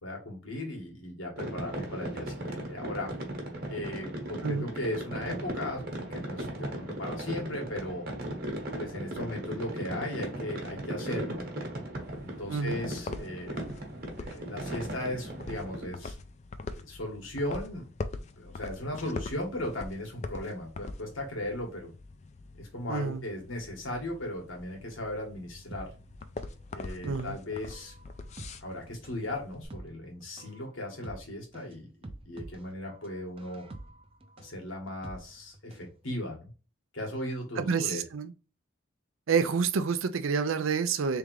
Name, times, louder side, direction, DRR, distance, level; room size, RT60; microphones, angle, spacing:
voice 1, 0.0-3.1 3.7-5.8 6.1-8.1 8.8-11.4 12.2-13.8 14.2-16.1 16.8-17.9 18.4-21.9 22.6-25.9 26.7-27.9 28.6-33.6 34.4-36.5 36.9-38.0, left 1 dB, 85° left, 1.7 m, -37 dB
sound 1, 1.4-15.9, right 1 dB, 50° right, 1.2 m, -37 dB
sound 2, 12.0-29.7, left 3 dB, 35° left, 0.3 m, -43 dB
voice 2, 12.5-12.8 22.9-23.2 27.0-27.4 37.6-38.3 39.3-41.2, right 5 dB, 90° right, 0.5 m, -28 dB
sound 3, 25.7-35.9 36.2-36.3, right 1 dB, 30° right, 0.5 m, -47 dB
3.7 x 3.4 x 3.1 m
head